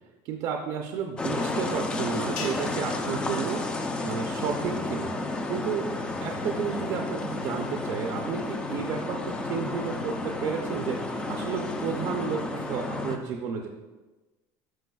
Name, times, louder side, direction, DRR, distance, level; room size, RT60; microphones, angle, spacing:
voice 1, 0.2-3.6 4.0-5.9 6.2-13.7, right 6 dB, 45° right, 3 dB, 0.5 m, -32 dB
sound 1, 1.2-13.2, left 2 dB, 10° left, 0.4 m, -32 dB
sound 2, 2.4-4.8, left 5 dB, 55° left, 1.1 m, -44 dB
12.5 x 4.7 x 2.3 m, 1.2 s
cardioid pair, 180°, 9 cm